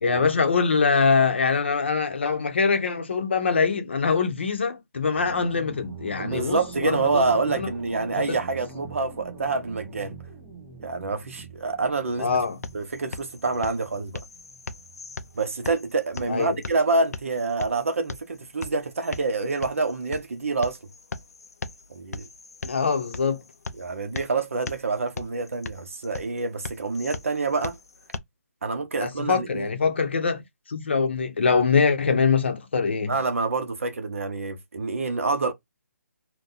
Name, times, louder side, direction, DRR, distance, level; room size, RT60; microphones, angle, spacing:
voice 1, 0.0-7.7 8.3-8.4 12.2-12.6 16.3-16.6 22.6-23.4 29.0-33.1, left 5 dB, 45° left, 0.8 m, -23 dB
sound 1, 5.2-16.7, right 4 dB, 5° right, 0.4 m, -44 dB
voice 2, 6.2-10.1 10.8-12.4 12.7-14.2 15.3-20.8 21.9-22.3 23.8-27.8 28.6-29.7 33.1-35.5, right 3 dB, 55° right, 0.8 m, -27 dB
sound 2, 12.2-28.2, left 3 dB, 70° left, 0.6 m, -40 dB
2.8 x 2.2 x 3.7 m
hypercardioid pair, 175°, 9 cm